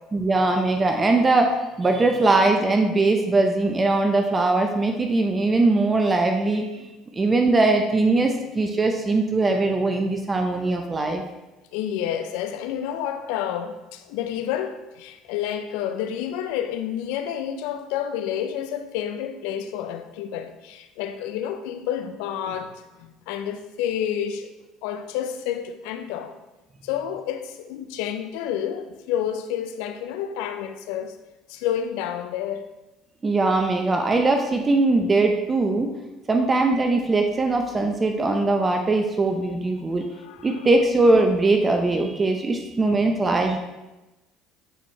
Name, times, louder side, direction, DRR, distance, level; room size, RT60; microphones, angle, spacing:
voice 1, 0.1-6.9 7.1-11.2 33.2-35.9 36.3-40.0 40.4-43.6, right 2 dB, 25° right, 0.7 m, -21 dB
voice 2, 11.7-24.5 24.8-26.4 26.8-31.2 31.5-32.7 40.1-40.5, left 9 dB, 75° left, 0.5 m, -29 dB
9.0 x 4.3 x 3.2 m
hypercardioid pair, 75°, 0 cm